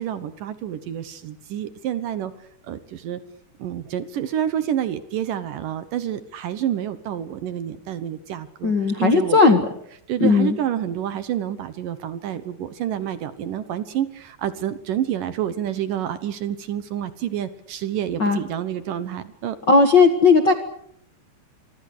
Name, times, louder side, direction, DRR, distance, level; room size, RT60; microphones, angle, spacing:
voice 1, 0.0-2.3 2.6-3.2 3.6-9.6 10.1-19.6, right 10 dB, 65° right, 12 dB, 2.4 m, -28 dB
voice 2, 8.6-9.6 10.2-10.6 18.2-18.4 19.7-20.5, left 4 dB, 50° left, 6 dB, 1.4 m, -16 dB
26.0 x 24.0 x 6.6 m, 0.70 s
omnidirectional pair, 4.6 m